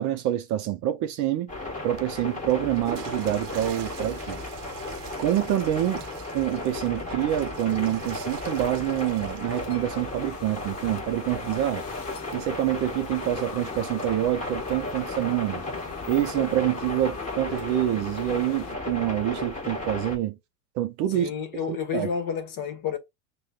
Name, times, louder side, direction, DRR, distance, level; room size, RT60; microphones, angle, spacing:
voice 1, 0.0-1.5 1.8-4.4 5.2-6.0 6.3-11.8 12.3-15.6 16.1-20.4 20.7-21.3 21.7-22.1, right 12 dB, 40° right, 0.5 m, -26 dB
sound 1, 1.5-20.2, left 2 dB, 15° left, 1.3 m, -35 dB
Water / Toilet flush, 1.8-10.2, right 11 dB, 85° right, 0.7 m, -44 dB
sound 2, 9.5-18.7, left 9 dB, 90° left, 0.7 m, -43 dB
voice 2, 21.1-23.0, left 7 dB, 45° left, 1.1 m, -30 dB
6.3 x 2.2 x 2.3 m
hypercardioid pair, 100°, 46 cm